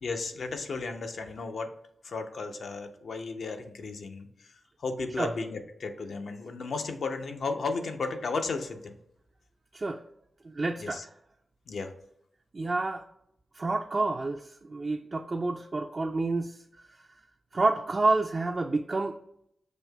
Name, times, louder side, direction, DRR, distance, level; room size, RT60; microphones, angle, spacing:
voice 1, 0.0-1.7 2.0-4.5 4.8-9.0 10.8-11.0 11.7-11.9, left 4 dB, 75° left, 6 dB, 0.5 m, -34 dB
voice 2, 10.4-11.0 12.5-13.0 13.6-16.6 17.5-19.1, right 3 dB, 40° right, 3 dB, 0.3 m, -29 dB
6.2 x 2.7 x 2.2 m, 0.74 s
cardioid pair, 70°, 0 cm